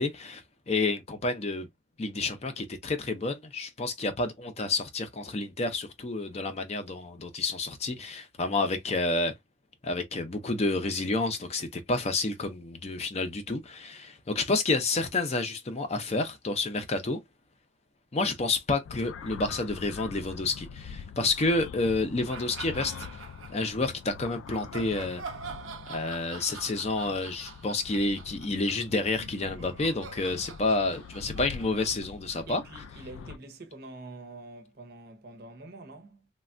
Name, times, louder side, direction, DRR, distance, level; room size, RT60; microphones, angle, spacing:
voice 1, 0.0-1.7 2.0-9.3 9.8-17.2 18.1-23.1 23.5-25.2 25.9-32.6, left 3 dB, 35° left, 0.5 m, -29 dB
sound 1, 18.8-33.4, left 6 dB, 85° left, 0.3 m, -44 dB
sound 2, 22.3-23.9 24.5-32.7, right 5 dB, 90° right, 0.6 m, -45 dB
voice 2, 32.5-36.3, right 2 dB, 55° right, 0.7 m, -46 dB
3.2 x 2.3 x 2.4 m
head